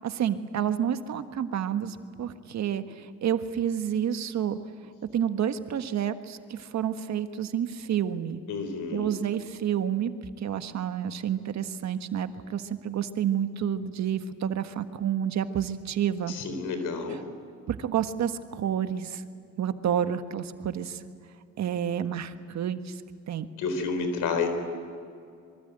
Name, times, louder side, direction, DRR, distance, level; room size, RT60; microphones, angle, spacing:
voice 1, 0.0-4.6 5.1-8.4 8.9-16.3 17.7-19.2 19.6-21.0 21.6-23.0 23.3-23.5, right 9 dB, 65° right, 9 dB, 1.6 m, -29 dB
voice 2, 8.5-9.1 16.3-17.2 23.6-24.5, left 4 dB, 85° left, 8 dB, 4.2 m, -30 dB
25.5 x 24.0 x 9.1 m, 2.4 s
cardioid pair, 90°, 30 cm